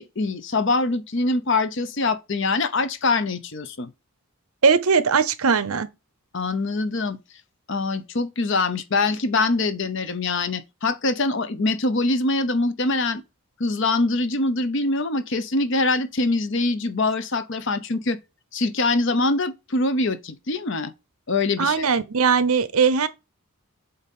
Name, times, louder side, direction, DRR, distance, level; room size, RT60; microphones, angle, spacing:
voice 1, 0.0-3.9 6.3-7.2 7.7-13.2 13.6-18.2 18.5-20.9 21.3-21.9, left 3 dB, 55° left, 0.8 m, -24 dB
voice 2, 4.6-5.9 21.6-23.1, right 5 dB, 80° right, 0.8 m, -19 dB
7.9 x 2.7 x 5.3 m
head